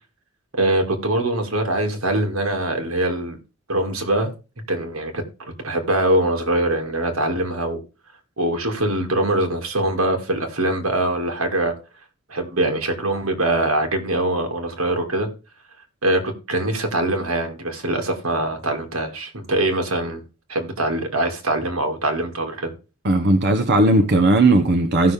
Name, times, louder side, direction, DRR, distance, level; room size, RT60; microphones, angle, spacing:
voice 1, 0.5-3.4 3.7-4.3 4.7-7.8 8.4-11.7 12.3-15.3 16.0-20.2 20.5-22.7, right 1 dB, 85° right, 2.4 m, -23 dB
voice 2, 23.0-25.1, right 2 dB, 55° right, 1.0 m, -16 dB
15.5 x 6.1 x 3.5 m
head